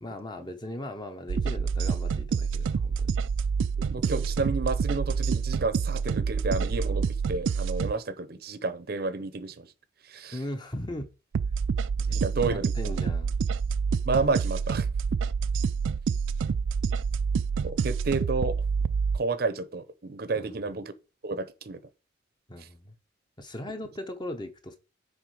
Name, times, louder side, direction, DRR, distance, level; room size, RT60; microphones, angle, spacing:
voice 1, 0.0-3.1 10.3-11.1 12.4-13.4 20.3-20.5 22.5-22.9 23.4-24.8, left 1 dB, 25° left, 0.9 m, -38 dB
sound 1, 1.3-7.9 11.3-19.2, right 5 dB, 90° right, 0.4 m, -27 dB
voice 2, 3.8-9.7 10.1-10.4 12.1-12.7 14.0-14.9 17.6-18.6 19.1-20.9 21.2-21.8 22.6-22.7, right 3 dB, 55° right, 0.7 m, -30 dB
9.7 x 3.8 x 4.9 m
head